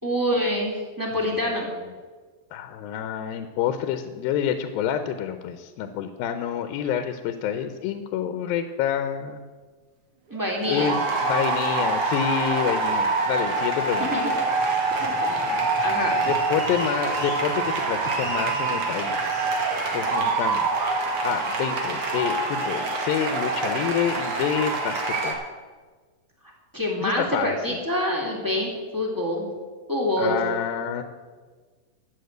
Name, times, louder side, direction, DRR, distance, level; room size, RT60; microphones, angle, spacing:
voice 1, 0.0-1.7 10.3-11.0 14.0-14.3 15.0-15.5 15.8-16.2 26.7-29.5 29.9-30.4, equal, 10° right, -1 dB, 1.4 m, -26 dB
voice 2, 2.5-9.4 10.7-14.3 16.1-20.7 21.2-25.4 27.0-27.8 30.2-31.0, left 9 dB, 85° left, 9 dB, 2.4 m, -28 dB
sound 1, 10.3-25.3, right 3 dB, 45° right, 2.3 m, -25 dB
13.0 x 7.1 x 7.9 m, 1.4 s
omnidirectional pair, 4.1 m